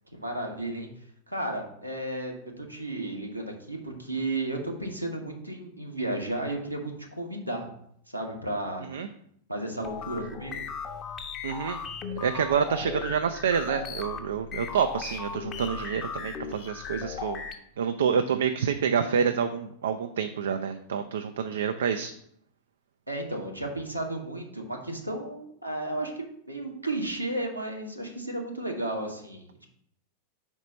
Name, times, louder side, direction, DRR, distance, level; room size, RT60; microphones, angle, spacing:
voice 1, 0.1-0.9 1.3-7.7 8.1-8.9 9.5-10.7 23.1-29.7, right 1 dB, 90° right, 0 dB, 1.2 m, -33 dB
sound 1, 9.8-17.5, left 5 dB, 25° left, 0.8 m, -37 dB
voice 2, 11.4-11.8 12.2-17.4 17.8-22.1, right 7 dB, 65° right, 9 dB, 0.4 m, -28 dB
4.9 x 4.5 x 5.5 m, 0.70 s
figure-of-eight pair, 90°, 0 cm